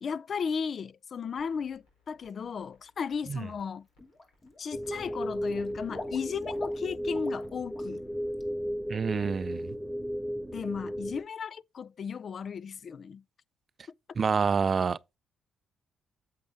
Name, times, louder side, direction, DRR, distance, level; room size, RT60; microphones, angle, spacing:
voice 1, 0.0-3.9 4.6-8.0 10.5-13.2, left 6 dB, 55° left, 0.3 m, -35 dB
sound 1, 1.4-8.3, left 3 dB, 85° left, 4.4 m, -68 dB
Water / Liquid, 3.3-3.6 4.0-4.7 4.9-7.5 7.7-8.0 8.3-8.4, left 2 dB, 35° left, 2.3 m, -44 dB
sound 2, 4.7-11.2, equal, 10° right, 0.9 m, -35 dB
voice 2, 8.9-9.7 14.2-15.0, right 5 dB, 45° right, 0.3 m, -27 dB
8.4 x 7.4 x 2.8 m
supercardioid pair, 55°, 0 cm